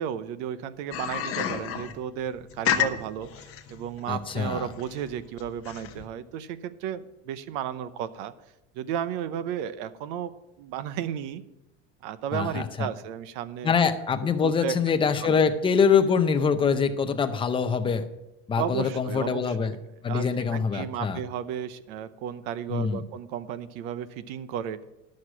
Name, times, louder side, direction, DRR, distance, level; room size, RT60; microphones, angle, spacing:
voice 1, 0.0-8.3 8.7-10.3 10.6-11.4 12.0-13.8 14.4-14.8 15.2-15.4 18.6-19.8 20.1-24.8, right 9 dB, 75° right, 14 dB, 0.9 m, -34 dB
sound 1, 0.9-6.0, left 10 dB, 40° left, 1.0 m, -30 dB
voice 2, 4.1-4.7 12.3-12.9 13.6-18.1 18.5-19.7 20.0-21.2 22.7-23.0, left 6 dB, 15° left, 7 dB, 0.6 m, -24 dB
12.0 x 6.4 x 6.1 m, 0.96 s
cardioid pair, 150°, 36 cm